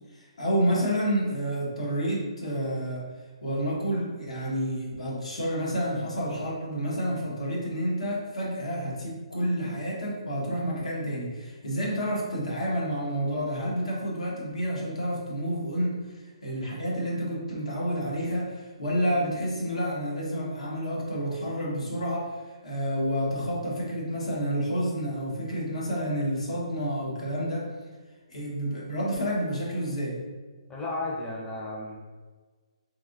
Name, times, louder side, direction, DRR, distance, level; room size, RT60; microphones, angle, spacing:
voice 1, 0.1-3.1 3.4-27.7 28.3-30.2, equal, 85° left, -3 dB, 1.0 m, -29 dB
voice 2, 30.7-32.0, left 2 dB, 10° left, -4 dB, 0.4 m, -33 dB
3.2 x 2.7 x 2.4 m, 1.4 s
hypercardioid pair, 155°, 3 cm